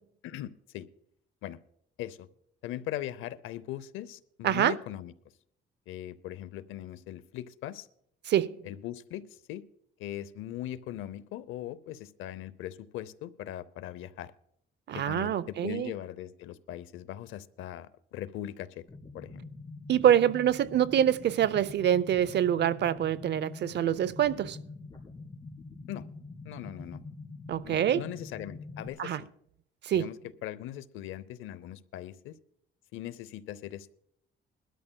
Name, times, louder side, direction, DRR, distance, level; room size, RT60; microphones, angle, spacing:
voice 1, 0.2-0.9 1.4-1.6 2.0-2.3 2.6-5.1 5.9-7.9 8.6-9.6 10.0-14.3 14.9-18.8 19.1-19.3 25.9-26.0 26.4-27.0 27.6-29.3 29.9-30.2 30.4-32.3 32.9-34.0, left 12 dB, 90° left, 0.7 m, -40 dB
voice 2, 4.4-4.7 8.3-8.6 14.9-15.9 19.9-24.6 27.5-28.0 29.0-29.2 29.8-30.1, right 10 dB, 60° right, 0.6 m, -25 dB
sound 1, 18.9-28.9, left 3 dB, 20° left, 2.9 m, -45 dB
22.0 x 12.5 x 2.3 m
cardioid pair, 90°, 20 cm